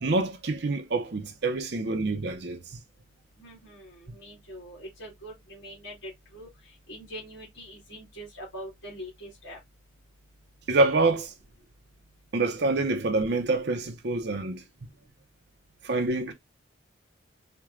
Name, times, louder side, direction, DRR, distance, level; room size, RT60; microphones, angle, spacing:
voice 1, 0.0-2.8 10.7-11.3 12.3-14.6 15.8-16.3, right 2 dB, 55° right, 0.6 m, -26 dB
voice 2, 3.4-9.6, equal, 70° left, 2.1 m, -43 dB
4.5 x 2.2 x 3.6 m
head